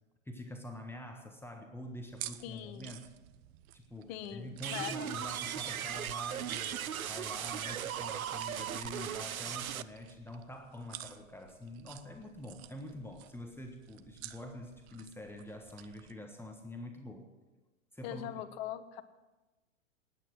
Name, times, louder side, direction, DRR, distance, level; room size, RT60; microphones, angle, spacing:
voice 1, 0.2-3.1 3.7-17.3 17.9-18.3, left 1 dB, 5° left, 3 dB, 1.4 m, -46 dB
sound 1, 2.1-16.2, right 14 dB, 50° right, 0.9 m, -52 dB
voice 2, 2.4-2.9 4.1-5.3 18.0-19.0, left 12 dB, 45° left, 11 dB, 1.3 m, -42 dB
sound 2, 4.6-9.8, right 10 dB, 90° right, 0.6 m, -38 dB
19.0 x 9.4 x 6.2 m, 1.1 s
hypercardioid pair, 105°, 41 cm